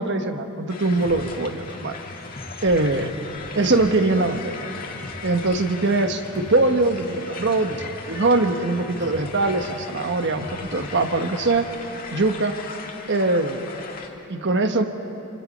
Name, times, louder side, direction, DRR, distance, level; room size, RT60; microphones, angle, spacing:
voice 1, 0.0-2.0 2.6-3.1 3.5-4.6 5.2-11.7 12.1-12.6 13.1-13.6 14.3-14.9, right 2 dB, 55° right, 7 dB, 1.3 m, -22 dB
sound 1, 0.7-14.1, left 4 dB, 40° left, 1.8 m, -38 dB
sound 2, 1.0-11.8, left 1 dB, 20° left, 1.1 m, -41 dB
27.5 x 25.5 x 5.4 m, 2.9 s
head